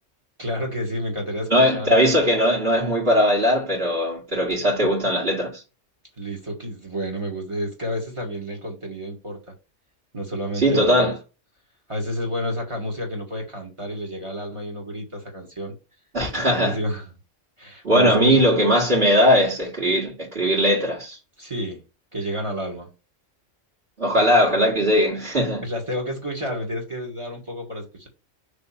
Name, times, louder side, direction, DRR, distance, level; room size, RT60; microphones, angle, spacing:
voice 1, 0.4-1.9 6.2-9.4 10.1-11.1 11.9-15.7 16.4-17.1 17.6-18.4 21.4-21.8 22.1-22.9 25.6-28.1, equal, 25° right, 2.0 m, -30 dB
voice 2, 1.5-5.6 10.6-11.2 16.1-16.8 17.8-21.2 24.0-25.6, equal, 50° right, 2.4 m, -19 dB
6.0 x 3.5 x 5.7 m
omnidirectional pair, 1.3 m